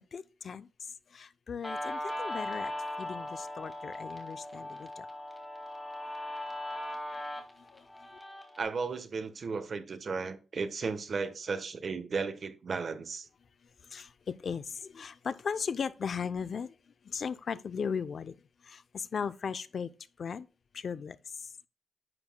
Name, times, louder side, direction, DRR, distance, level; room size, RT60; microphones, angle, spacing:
voice 1, 0.1-0.7 1.2-2.7 3.0-4.9 13.9-14.1 14.4-14.6 14.9-16.7 17.1-18.3 18.9-19.9 20.2-20.4 20.8-21.2, left 6 dB, 50° left, 0.6 m, -36 dB
Guitar, 1.6-8.6, left 1 dB, 10° left, 2.1 m, -39 dB
voice 2, 8.6-13.3, right 4 dB, 45° right, 1.1 m, -35 dB
11.0 x 8.2 x 2.2 m
wide cardioid pair, 155°, 0 cm